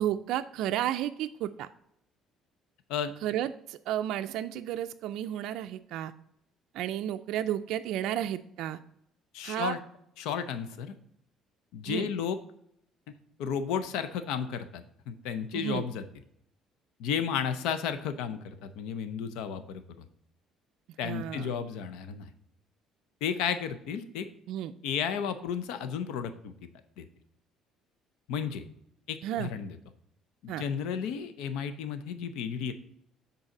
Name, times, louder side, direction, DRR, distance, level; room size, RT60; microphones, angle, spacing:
voice 1, 0.0-1.7 3.2-6.1 6.7-8.8 9.4-9.8 11.8-12.1 15.5-15.9 21.0-21.5 24.5-24.7 29.2-29.5 30.5-30.6, right 11 dB, 75° right, 8 dB, 0.3 m, -32 dB
voice 2, 9.3-9.8 10.2-10.9 11.7-12.4 13.4-16.0 17.0-20.1 21.0-22.3 23.2-24.3 24.8-26.5 27.0-27.1 28.3-28.6 29.1-29.8 30.4-32.7, left 7 dB, 85° left, 10 dB, 0.6 m, -33 dB
6.5 x 4.0 x 5.8 m, 0.73 s
cardioid pair, 115°, 0 cm